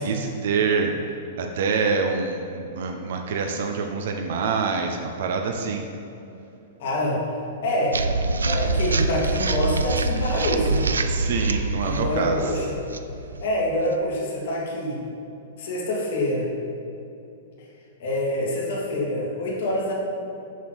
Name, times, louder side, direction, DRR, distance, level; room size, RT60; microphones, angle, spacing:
voice 1, 0.0-5.8 11.0-12.4, right 5 dB, 65° right, 4 dB, 0.8 m, -26 dB
voice 2, 6.8-7.2 7.6-8.0 8.4-10.9 11.8-12.8 13.4-15.0 15.6-16.5 18.0-19.9, left 1 dB, 65° left, -3 dB, 2.2 m, -26 dB
sound 1, 7.9-14.1, right 3 dB, 85° right, 0.5 m, -25 dB
7.2 x 6.2 x 6.1 m, 2.8 s
hypercardioid pair, 110°, 0 cm